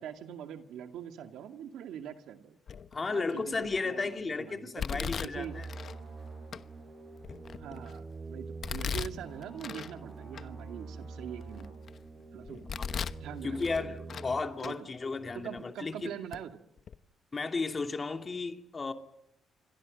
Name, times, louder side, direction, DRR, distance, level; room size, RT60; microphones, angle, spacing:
voice 1, 0.0-2.6 3.1-5.6 7.6-11.8 12.3-12.8 13.2-14.1 14.6-14.9 15.3-16.6, right 9 dB, 85° right, 2.2 m, -43 dB
Domestic sounds home sounds, 2.7-3.1 3.6-4.1 4.8-6.0 6.5-6.6 7.2-8.0 8.6-9.9 10.3-10.4 11.0-12.0 12.5-13.2 13.6-14.3 14.6-14.7 15.6-15.7 16.3-16.4 16.8-17.0, left 7 dB, 55° left, 1.0 m, -38 dB
voice 2, 2.9-5.7 13.4-16.2 17.3-18.9, left 4 dB, 30° left, 2.7 m, -34 dB
sound 1, 5.3-14.4, right 3 dB, 35° right, 6.1 m, -45 dB
28.5 x 25.0 x 5.4 m
cardioid pair, 90°, 0 cm